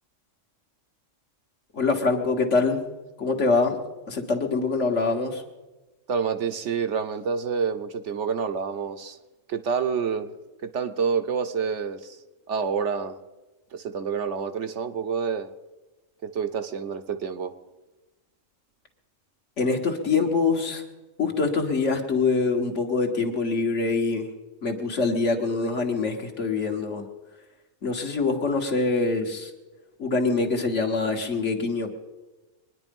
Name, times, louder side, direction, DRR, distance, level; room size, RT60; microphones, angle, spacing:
voice 1, 1.7-2.8 3.2-3.8 4.1-5.4 19.6-20.8 21.2-24.3 24.6-27.0 27.8-29.5 30.0-31.9, left 4 dB, 65° left, 3 dB, 1.9 m, -24 dB
voice 2, 6.1-9.2 9.5-10.3 10.6-12.2 12.5-13.2 13.7-15.5 16.2-17.5, right 6 dB, 65° right, 8 dB, 1.1 m, -28 dB
24.0 x 10.0 x 5.3 m, 1.1 s
omnidirectional pair, 1.3 m